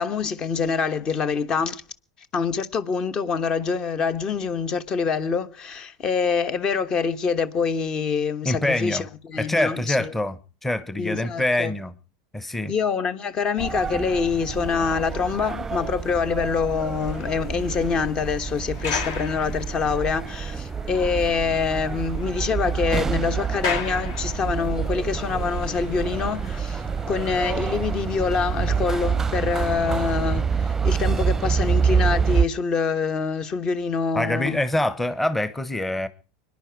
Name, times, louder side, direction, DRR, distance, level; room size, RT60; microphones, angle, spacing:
voice 1, 0.0-1.8 2.3-10.1 11.0-11.7 12.7-34.6, left 5 dB, 35° left, 1.2 m, -25 dB
voice 2, 8.4-9.0 9.4-10.4 10.6-11.9 12.3-12.7 34.1-36.1, left 1 dB, 10° left, 1.1 m, -25 dB
sound 1, 13.6-32.5, right 6 dB, 15° right, 0.6 m, -27 dB
sound 2, 16.4-29.7, left 2 dB, 85° left, 6.9 m, -46 dB
sound 3, 16.7-20.2 20.7-20.8 21.2-21.3 21.6-24.8, left 6 dB, 65° left, 4.7 m, -36 dB
24.0 x 10.5 x 4.7 m
hypercardioid pair, 95°, 2 cm